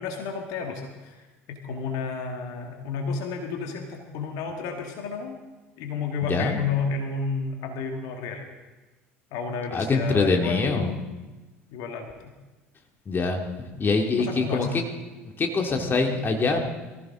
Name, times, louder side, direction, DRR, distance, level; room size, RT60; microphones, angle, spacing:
voice 1, 0.0-5.4 5.8-8.5 9.3-11.1 11.7-12.3 14.2-14.7, left 5 dB, 55° left, 4 dB, 1.8 m, -31 dB
voice 2, 9.7-10.9 13.1-13.4 13.8-14.7 15.2-16.6, left 3 dB, 30° left, 3 dB, 2.2 m, -24 dB
23.0 x 15.0 x 3.7 m, 1.2 s
figure-of-eight pair, 65°, 7 cm